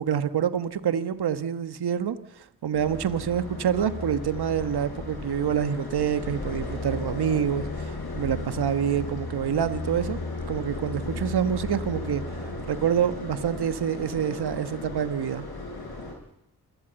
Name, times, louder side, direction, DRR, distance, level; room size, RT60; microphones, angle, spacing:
voice 1, 0.0-10.2 10.5-12.2 12.7-15.4, right 8 dB, 70° right, 11 dB, 1.4 m, -27 dB
sound 1, 2.7-16.1, left 2 dB, 65° left, 7.8 m, -35 dB
27.5 x 14.5 x 8.1 m, 0.80 s
supercardioid pair, 45°, 40 cm